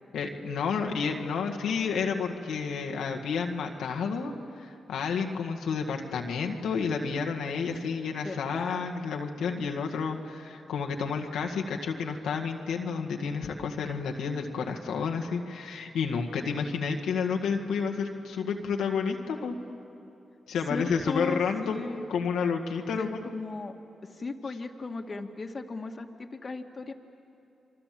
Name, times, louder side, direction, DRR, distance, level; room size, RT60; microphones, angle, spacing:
voice 1, 0.1-19.6 20.5-23.2, left 5 dB, 85° left, 2 dB, 1.9 m, -30 dB
voice 2, 8.2-8.9 17.0-17.1 20.7-22.1 23.0-23.8 24.1-26.9, left 3 dB, 45° left, 4 dB, 2.0 m, -37 dB
29.5 x 24.0 x 7.7 m, 2.8 s
supercardioid pair, 50°, 0 cm